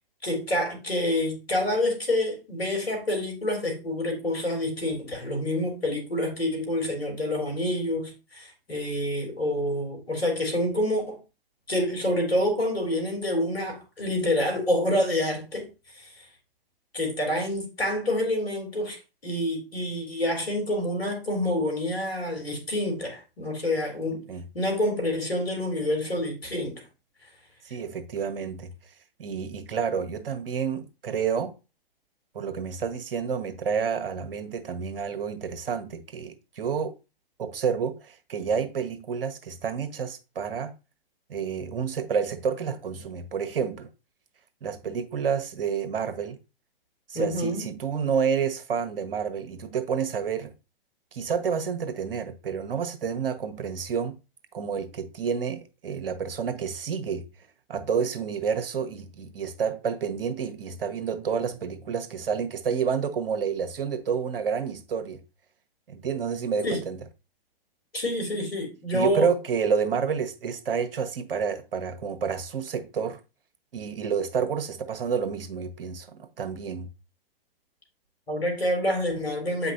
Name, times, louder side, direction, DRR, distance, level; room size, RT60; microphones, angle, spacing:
voice 1, 0.2-11.2 11.7-15.7 16.0-16.1 16.9-19.0 19.2-24.2 24.5-26.8 47.1-47.6 66.6-66.8 67.9-69.3 78.3-79.7, left 1 dB, 90° left, 3.2 m, -27 dB
voice 2, 27.6-28.7 29.2-31.5 32.3-36.9 37.4-40.7 41.3-43.9 44.6-46.4 47.1-50.5 51.1-54.2 54.5-57.2 57.7-65.2 65.9-67.0 68.9-73.2 73.7-76.9, right 6 dB, 70° right, 1.2 m, -29 dB
8.4 x 5.2 x 2.6 m
hypercardioid pair, 115°, 29 cm